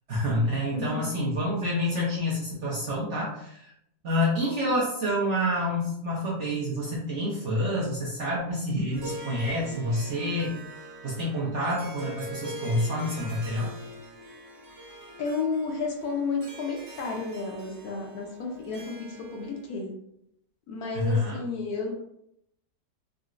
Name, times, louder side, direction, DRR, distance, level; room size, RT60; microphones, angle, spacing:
voice 1, 0.1-3.7 4.0-10.5 11.0-13.7 20.9-21.4, left 1 dB, 55° right, -6 dB, 0.9 m, -28 dB
voice 2, 0.7-1.1 15.2-19.9 20.7-21.9, left 4 dB, 70° left, 0 dB, 1.0 m, -32 dB
Harp, 8.8-19.7, right 1 dB, 80° right, 1.4 m, -43 dB
3.8 x 2.1 x 2.4 m, 0.78 s
omnidirectional pair, 1.8 m